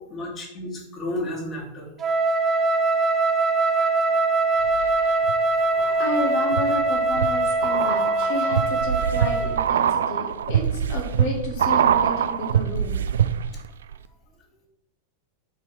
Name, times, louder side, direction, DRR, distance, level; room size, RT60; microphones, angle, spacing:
voice 1, 0.1-1.9 5.6-6.0, left 1 dB, 30° left, -2 dB, 2.6 m, -33 dB
Wind instrument woodwind instrument, 2.0-9.6, right 2 dB, 25° right, 0.7 m, -22 dB
sound 1, 4.6-5.3 5.8-13.7 13.9-14.0, right 8 dB, 65° right, 0.4 m, -24 dB
voice 2, 6.0-13.0, left 1 dB, 50° left, -1 dB, 1.7 m, -31 dB
6.0 x 4.6 x 6.5 m, 0.83 s
figure-of-eight pair, 90°, 0 cm